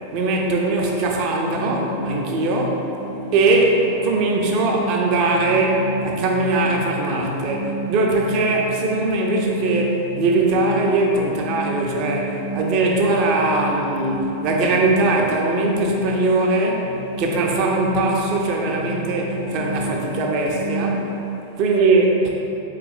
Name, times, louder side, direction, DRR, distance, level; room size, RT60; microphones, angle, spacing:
voice 1, 0.1-2.9 3.3-21.0 21.6-22.3, right 2 dB, 40° right, 0 dB, 0.6 m, -20 dB
sound 1, 1.4-21.2, right 1 dB, 85° left, 0.5 m, -30 dB
4.1 x 3.2 x 3.9 m, 2.9 s
figure-of-eight pair, 90°, 0 cm